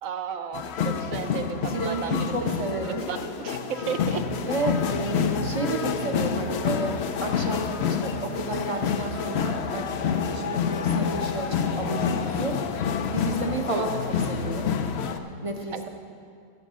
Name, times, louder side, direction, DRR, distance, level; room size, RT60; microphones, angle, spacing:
voice 1, 0.0-2.2 2.8-4.2 13.7-13.9 15.7-15.9, right 7 dB, 65° right, 8 dB, 0.9 m, -33 dB
sound 1, 0.5-15.2, left 6 dB, 85° left, 0.5 m, -28 dB
voice 2, 1.7-3.1 4.4-12.6 13.1-14.0 14.3-14.7 15.4-15.9, right 2 dB, 30° right, 1 dB, 0.6 m, -31 dB
15.5 x 6.6 x 6.2 m, 2.3 s
omnidirectional pair, 1.8 m